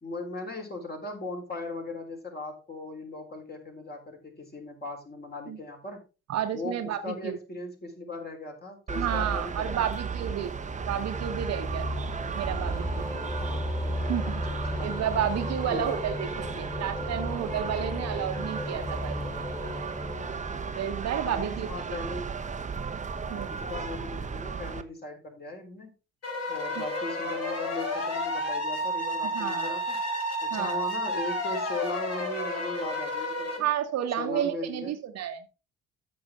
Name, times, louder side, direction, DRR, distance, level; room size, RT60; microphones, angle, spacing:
voice 1, 0.0-6.0 6.5-9.9 13.2-13.7 14.2-14.9 15.7-15.9 21.2-22.4 23.1-25.9 26.5-30.0 30.4-33.7 34.2-34.9, left 2 dB, 30° left, 2 dB, 3.9 m, -38 dB
voice 2, 6.3-7.4 8.9-10.5 10.9-11.9 12.3-13.1 14.1-14.4 14.8-19.2 20.7-22.0 23.3-23.5 29.3-29.8 30.5-30.8 33.6-35.4, right 9 dB, 50° right, 7 dB, 1.2 m, -31 dB
sound 1, 8.9-24.8, right 5 dB, 20° right, 1.0 m, -35 dB
sound 2, 10.2-21.0, left 1 dB, 10° left, 3.0 m, -35 dB
sound 3, 26.2-33.6, equal, 45° left, 4.2 m, -31 dB
13.5 x 6.2 x 3.6 m, 0.31 s
figure-of-eight pair, 45°, 34 cm